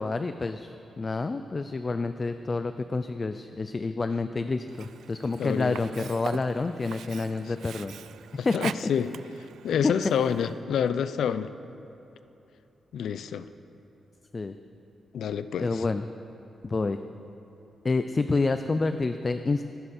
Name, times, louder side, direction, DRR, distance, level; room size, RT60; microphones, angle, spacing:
voice 1, 0.0-8.0 8.4-8.5 9.8-9.9 14.3-14.6 15.6-16.1 16.6-17.0 17.8-19.6, left 3 dB, 25° left, 9 dB, 0.4 m, -28 dB
Sink (filling or washing), 4.7-10.6, right 9 dB, 85° right, 0.3 m, -43 dB
voice 2, 5.4-5.8 8.4-9.1 9.6-11.5 12.9-13.5 15.1-15.8, left 8 dB, 80° left, 13 dB, 0.5 m, -28 dB
24.5 x 11.5 x 4.3 m, 2.9 s
wide cardioid pair, 175°, 0 cm